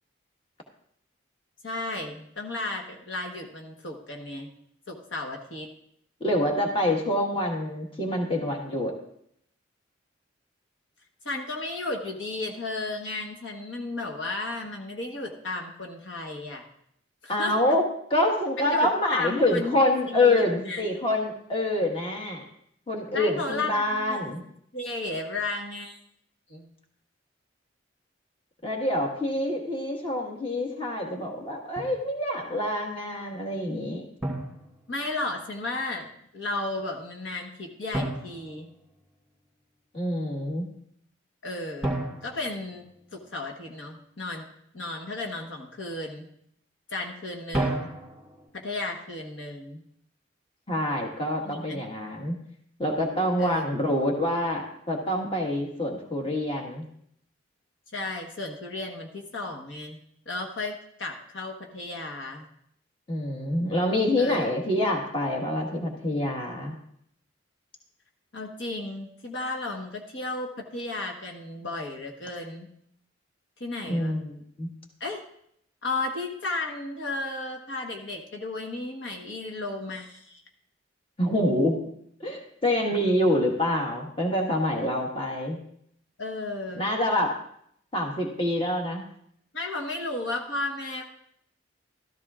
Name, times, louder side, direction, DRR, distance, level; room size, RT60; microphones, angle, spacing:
voice 1, 1.6-4.5 4.9-5.7 11.2-16.6 17.2-17.5 18.6-19.7 20.0-20.9 23.1-23.8 24.1-24.2 24.7-26.0 26.5-26.7 34.9-38.7 41.4-42.9 43.1-44.5 44.7-46.3 46.9-47.9 48.5-49.8 51.4-51.8 53.4-53.7 57.9-60.0 60.3-62.4 64.2-64.5 68.3-72.7 73.6-74.2 75.0-75.2 75.8-80.4 86.2-86.9 89.5-91.0, left 2 dB, 70° left, 1 dB, 1.3 m, -34 dB
voice 2, 6.2-8.9 17.3-17.8 18.1-22.4 22.9-24.4 28.6-34.0 39.9-40.7 50.7-52.4 52.8-56.8 63.1-66.7 73.9-74.7 81.2-81.8 82.2-85.6 86.7-87.3 87.9-89.1, left 1 dB, 25° left, 1 dB, 1.5 m, -26 dB
Drum, 31.8-32.0 34.2-35.4 37.9-39.3 41.8-43.5 47.5-48.5, right 1 dB, ahead, 2.6 m, -33 dB
14.0 x 13.5 x 2.5 m, 0.71 s
head